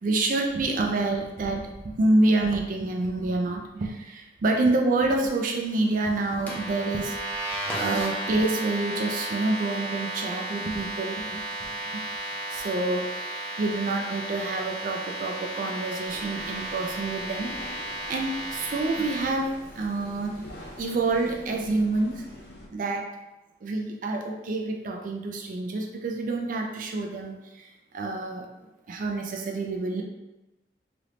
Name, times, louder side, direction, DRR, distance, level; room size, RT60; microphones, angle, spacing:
voice 1, 0.0-7.2 7.8-12.0 12.5-17.5 17.8-20.4 20.8-22.2 22.7-23.1 23.6-28.5 28.9-30.0, right 2 dB, 45° right, 1 dB, 0.3 m, -27 dB
sound 1, 6.5-19.2, right 1 dB, 10° left, 0.6 m, -34 dB
sound 2, 16.0-22.7, equal, 60° left, 0.6 m, -46 dB
3.3 x 2.9 x 2.5 m, 0.98 s
head